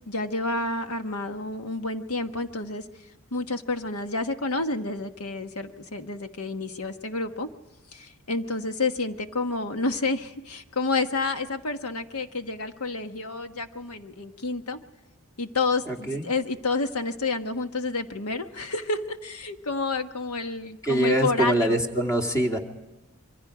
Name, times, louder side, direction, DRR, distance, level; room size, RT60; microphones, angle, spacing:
voice 1, 0.1-2.9 3.3-7.5 7.9-14.8 15.4-21.8, left 3 dB, 90° left, 7 dB, 1.4 m, -29 dB
voice 2, 15.9-16.2 20.8-22.6, right 1 dB, 15° left, 2 dB, 2.4 m, -24 dB
26.5 x 23.5 x 5.0 m, 1.1 s
head